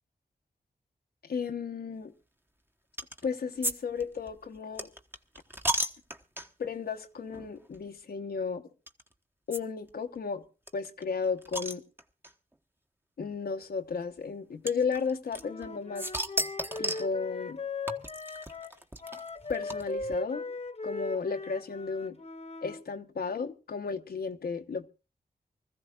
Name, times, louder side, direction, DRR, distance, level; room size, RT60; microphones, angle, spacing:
voice 1, 1.2-2.1 3.2-4.9 6.6-8.6 9.5-10.4 10.7-11.8 13.2-16.1 16.8-17.6 19.5-20.6 20.8-22.2 22.6-24.9, left 5 dB, 80° left, 1.1 m, -34 dB
sound 1, 3.0-3.3 3.6-3.7 4.0-6.7 7.3-7.5 7.7-7.8 8.9-9.0 9.5-9.6 9.9-10.0 10.2-10.3 10.7-12.3 13.2-13.3 14.7-15.7 16.0-17.1 17.9-20.1, right 1 dB, 15° right, 1.2 m, -34 dB
Wind instrument woodwind instrument, 15.4-22.8, left 3 dB, 40° left, 1.1 m, -39 dB
24.5 x 15.0 x 2.5 m
cardioid pair, 70°, 16 cm